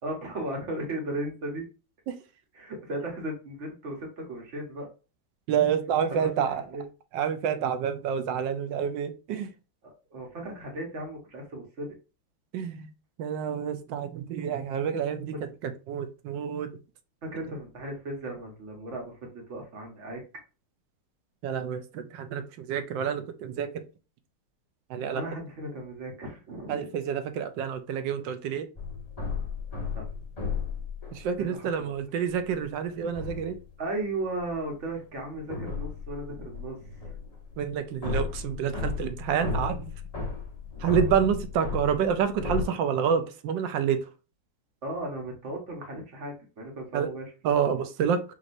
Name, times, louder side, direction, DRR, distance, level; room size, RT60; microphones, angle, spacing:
voice 1, 0.0-1.6 2.5-4.9 6.2-6.8 9.8-11.9 17.2-20.2 25.1-26.9 29.9-30.0 31.4-31.9 33.8-36.8 44.8-47.3, right 1 dB, 40° right, 1.2 m, -36 dB
voice 2, 5.5-6.6 7.1-9.5 12.5-12.9 13.2-15.3 15.9-16.7 21.4-23.7 24.9-25.2 26.7-28.7 31.1-33.6 37.6-39.9 40.8-44.0 46.9-47.1 47.4-48.2, right 8 dB, 70° right, 1.1 m, -28 dB
sound 1, 28.8-31.2 32.3-32.5 32.9-33.7 34.5-42.6, left 5 dB, 25° left, 0.9 m, -34 dB
6.0 x 2.7 x 2.6 m
omnidirectional pair, 2.4 m